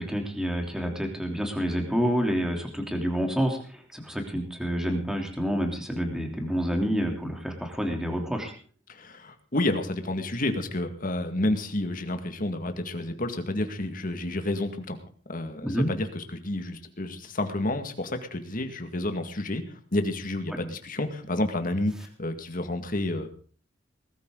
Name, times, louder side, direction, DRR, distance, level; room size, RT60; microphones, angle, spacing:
voice 1, 0.0-8.5 15.6-15.9 20.5-20.6, equal, 5° right, 3 dB, 3.3 m, -28 dB
voice 2, 8.9-15.0 15.3-23.3, left 1 dB, 45° left, 7 dB, 2.0 m, -30 dB
20.5 x 13.5 x 3.9 m, 0.42 s
head